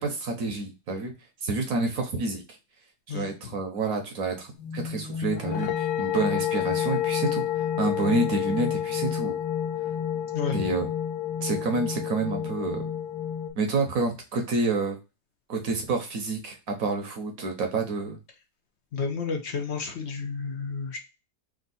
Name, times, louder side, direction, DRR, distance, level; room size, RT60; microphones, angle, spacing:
voice 1, 0.0-1.1 1.4-2.6 3.1-9.4 10.5-10.9 11.4-12.9 13.6-15.0 15.5-18.2, right 3 dB, 60° right, 3 dB, 1.0 m, -28 dB
sound 1, 4.6-13.5, left 9 dB, 80° left, 1.4 m, -29 dB
voice 2, 18.9-21.0, left 5 dB, 55° left, 4 dB, 0.8 m, -31 dB
3.5 x 2.7 x 4.0 m, 0.28 s
omnidirectional pair, 2.0 m